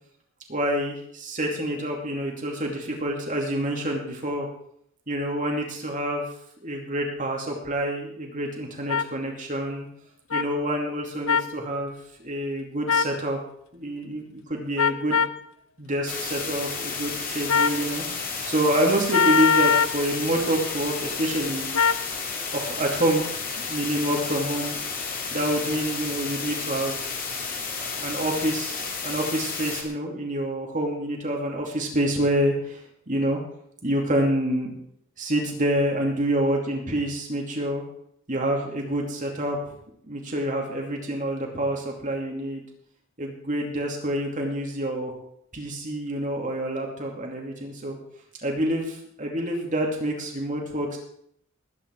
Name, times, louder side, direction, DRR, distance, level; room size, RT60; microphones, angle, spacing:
voice 1, 0.5-4.5 5.1-6.2 6.6-9.9 10.3-11.9 12.2-13.4 13.7-15.3 15.8-21.7 22.5-23.2 23.7-24.8 25.3-27.0 27.8-32.8 33.1-33.4 33.8-34.7 35.2-37.8 38.3-39.6 40.1-42.6 43.2-45.1 45.5-48.0 48.4-51.0, right 1 dB, 35° right, 1 dB, 2.6 m, -27 dB
sound 1, 8.9-9.1 10.3-10.4 11.3-11.5 12.9-13.2 14.8-15.4 17.5-17.8 19.1-20.0 21.7-22.0, left 6 dB, 75° left, 0.7 m, -21 dB
sound 2, 16.1-29.8, left 5 dB, 40° left, 2.7 m, -32 dB
19.5 x 9.2 x 4.6 m, 0.68 s
head